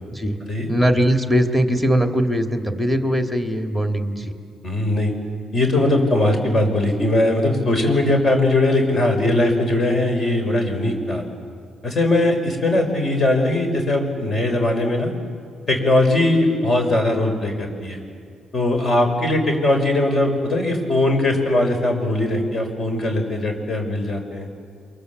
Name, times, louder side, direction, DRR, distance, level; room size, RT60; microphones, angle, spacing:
voice 1, 0.7-4.3, equal, 5° left, 4 dB, 2.5 m, -20 dB
voice 2, 4.6-5.1 5.5-11.2 11.8-15.1 15.7-18.0 18.5-24.5, left 1 dB, 40° left, 4 dB, 5.7 m, -20 dB
29.0 x 23.5 x 8.0 m, 2.3 s
cardioid pair, 90°, 0 cm